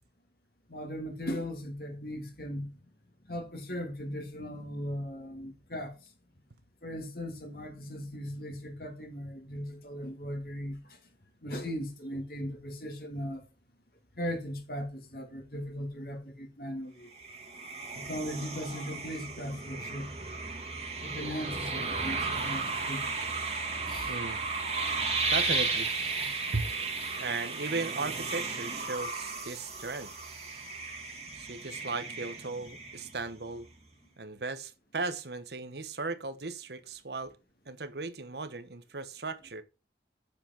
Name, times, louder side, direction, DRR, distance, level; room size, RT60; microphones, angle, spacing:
voice 1, 0.7-2.7 3.3-5.9 6.8-10.8 11.4-13.4 14.2-17.1 17.9-20.1 21.0-23.3 23.9-24.2 26.2-26.3, equal, 55° left, 2.9 m, -38 dB
sound 1, 17.1-33.4, right 4 dB, 40° right, 2.2 m, -34 dB
voice 2, 24.0-24.4 25.3-25.9 26.5-26.7 27.2-30.1 31.3-33.7 34.2-37.3 37.7-39.6, right 3 dB, 70° right, 1.1 m, -36 dB
8.4 x 6.8 x 4.5 m
head